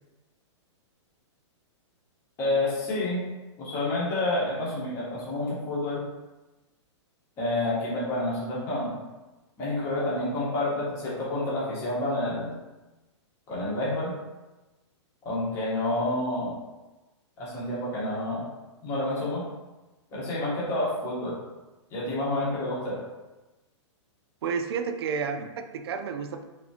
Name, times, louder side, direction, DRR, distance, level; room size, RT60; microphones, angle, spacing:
voice 1, 2.4-3.2 3.6-6.0 7.4-9.0 9.6-12.5 13.5-14.1 15.2-16.6 17.4-18.5 18.8-19.4 20.1-21.3 21.9-23.0, left 1 dB, 20° left, -7 dB, 1.2 m, -29 dB
voice 2, 24.4-26.4, right 6 dB, 55° right, 7 dB, 0.4 m, -31 dB
4.1 x 3.5 x 2.8 m, 1.1 s
hypercardioid pair, 170°, 16 cm